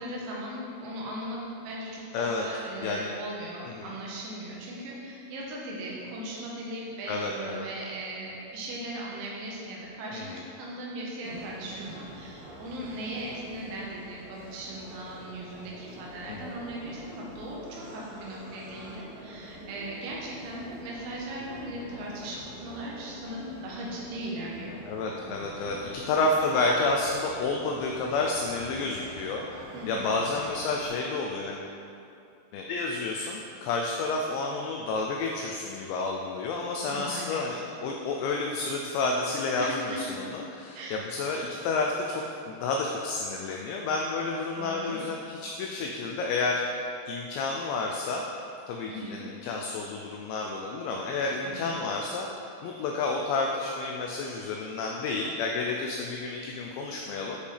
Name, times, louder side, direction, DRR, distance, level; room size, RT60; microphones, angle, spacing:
voice 1, 0.0-24.8 29.7-30.2 36.9-37.4 39.6-40.0 40.8-41.1 44.6-45.0 48.9-49.3 51.4-51.8, right 1 dB, 85° right, -4 dB, 3.8 m, -38 dB
voice 2, 2.1-2.5 2.8-3.1 3.8-3.9 7.1-7.7 10.1-10.4 16.3-16.5 24.9-31.7 32.5-46.8 47.1-48.2 48.7-57.4, left 3 dB, 85° left, 0 dB, 2.5 m, -30 dB
sound 1, 11.2-30.9, right 1 dB, 65° right, 2.4 m, -46 dB
10.5 x 5.2 x 3.3 m, 2.6 s
omnidirectional pair, 5.6 m